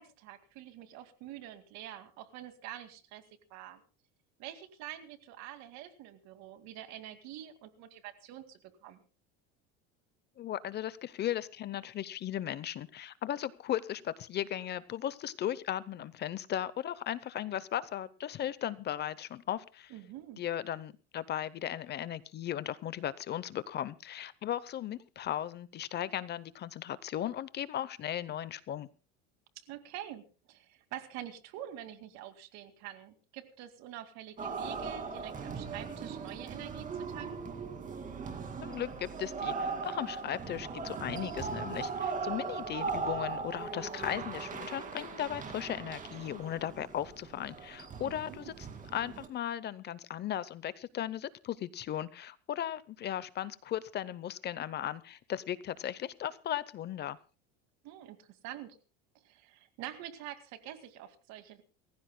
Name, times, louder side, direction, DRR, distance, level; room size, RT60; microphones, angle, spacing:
voice 1, 0.0-3.2 3.5-3.8 4.4-9.0 19.9-20.4 29.7-37.6 48.0-48.5 57.8-58.8 59.2-61.6, right 12 dB, 60° right, 9 dB, 2.2 m, -46 dB
voice 2, 10.4-19.9 20.4-28.9 38.6-48.7 48.9-57.2, left 11 dB, 35° left, 17 dB, 0.7 m, -37 dB
sound 1, 34.4-49.3, right 5 dB, 25° right, 2.3 m, -39 dB
29.0 x 15.0 x 2.2 m, 0.32 s
cardioid pair, 140°, 30 cm